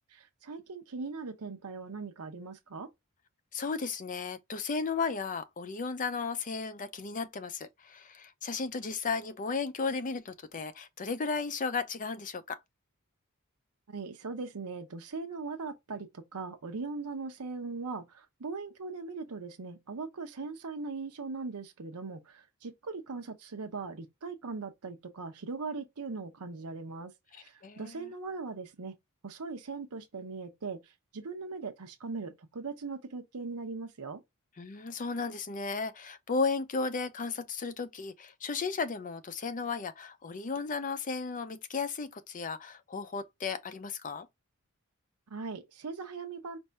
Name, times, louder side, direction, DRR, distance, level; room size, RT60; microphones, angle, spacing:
voice 1, 0.1-2.9 13.9-28.9 29.2-34.2 45.3-46.6, right 4 dB, 80° right, 0.7 m, -40 dB
voice 2, 3.5-12.6 27.3-28.1 34.6-44.3, left 4 dB, 35° left, 0.5 m, -34 dB
5.3 x 2.6 x 3.4 m
head